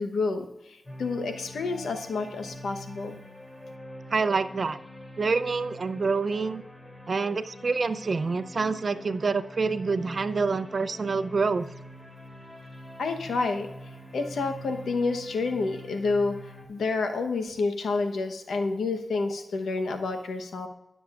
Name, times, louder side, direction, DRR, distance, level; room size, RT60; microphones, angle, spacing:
voice 1, 0.0-3.2 13.0-13.7 14.1-16.4 16.7-20.7, left 3 dB, 85° left, 5 dB, 0.9 m, -29 dB
sound 1, 0.9-16.7, equal, 25° left, 2.9 m, -45 dB
voice 2, 4.1-4.8 5.2-6.6 7.1-11.7, right 4 dB, 60° right, 12 dB, 0.5 m, -27 dB
17.0 x 7.1 x 2.4 m, 0.93 s
cardioid pair, 50°, 0 cm